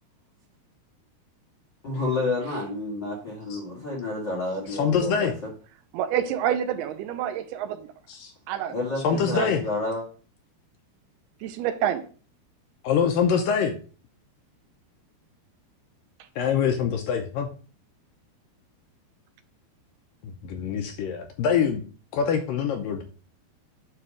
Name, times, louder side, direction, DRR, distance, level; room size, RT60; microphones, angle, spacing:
voice 1, 1.8-5.3 8.7-10.0, left 2 dB, 45° left, 1.5 m, -29 dB
voice 2, 4.7-5.3 8.1-8.3 9.0-9.6 12.8-13.8 16.4-17.5 20.4-21.8 22.1-23.0, left 7 dB, 80° left, 2.0 m, -24 dB
voice 3, 5.9-7.9 8.5-8.8 9.3-9.5 11.4-12.0, right 10 dB, 80° right, 2.6 m, -27 dB
9.7 x 3.5 x 6.3 m
omnidirectional pair, 4.9 m